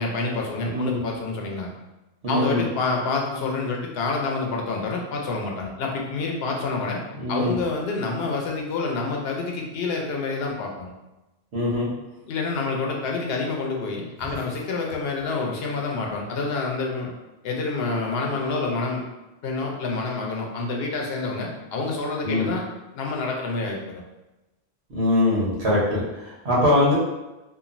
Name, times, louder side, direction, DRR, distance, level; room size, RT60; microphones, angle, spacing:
voice 1, 0.0-1.7 2.3-7.0 7.3-10.9 12.3-17.1 17.4-19.0 19.4-22.6 22.9-24.0, left 3 dB, 75° left, 0 dB, 0.8 m, -28 dB
voice 2, 0.6-1.0 2.2-2.6 7.1-7.5 11.5-11.9 22.2-22.5 24.9-26.9, left 1 dB, 80° right, -6 dB, 1.3 m, -22 dB
3.0 x 2.4 x 2.5 m, 1.0 s
omnidirectional pair, 1.1 m